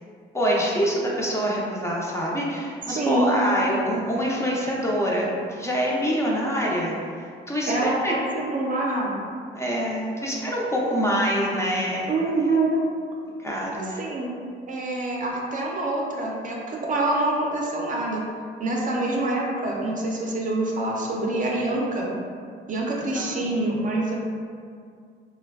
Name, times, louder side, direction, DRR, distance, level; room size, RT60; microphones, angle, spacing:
voice 1, 0.3-6.9 7.5-8.1 9.5-12.1 13.4-14.0 23.1-23.5, equal, 15° left, -4 dB, 0.5 m, -25 dB
voice 2, 2.9-3.3 7.7-9.2 12.1-12.8 13.8-14.3 14.7-18.2 18.6-22.1 22.7-24.2, right 2 dB, 40° right, -2 dB, 0.5 m, -26 dB
3.2 x 2.2 x 2.3 m, 2.2 s
cardioid pair, 90°, 20 cm